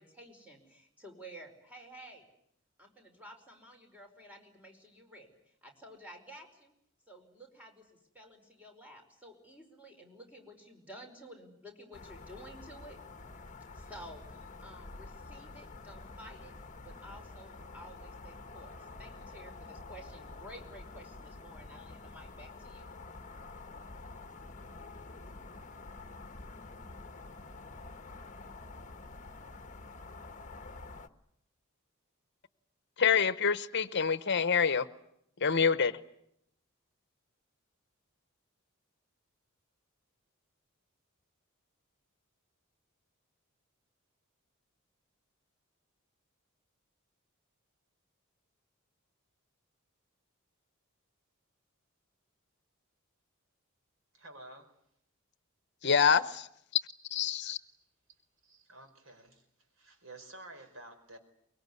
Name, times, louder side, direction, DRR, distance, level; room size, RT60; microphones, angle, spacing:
voice 1, 0.0-2.3 2.8-6.7 7.1-13.0 13.7-16.5 16.8-22.9, right 1 dB, 5° right, 3 dB, 5.1 m, -52 dB
sound 1, 11.9-31.1, left 3 dB, 35° left, 1.2 m, -48 dB
voice 2, 33.0-34.9 35.4-36.0 55.8-56.5 57.1-57.6, left 6 dB, 55° left, 14 dB, 0.9 m, -26 dB
voice 3, 54.1-54.7 57.4-57.5 58.4-59.4 59.8-61.2, right 2 dB, 70° right, 7 dB, 4.6 m, -51 dB
24.0 x 22.5 x 9.6 m, 0.75 s
head